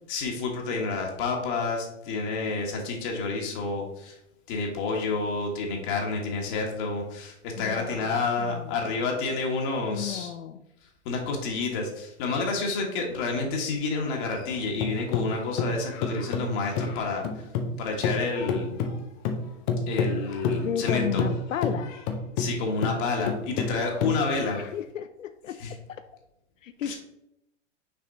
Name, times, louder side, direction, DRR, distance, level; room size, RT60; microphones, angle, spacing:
voice 1, 0.1-4.2 4.5-10.3 10.8-17.5 17.8-18.7 19.9-21.2 22.4-24.6 25.6-25.7 26.8-27.0, left 3 dB, 40° left, 0 dB, 1.6 m, -29 dB
voice 2, 7.6-9.0 9.9-10.6 20.6-22.0 24.7-25.6 25.9-26.0 26.6-26.9, left 8 dB, 85° left, 9 dB, 0.6 m, -33 dB
sound 1, 14.4-17.8 18.0-24.7, left 5 dB, 15° left, 0.3 m, -29 dB
6.1 x 4.2 x 4.0 m, 0.82 s
hypercardioid pair, 125°, 38 cm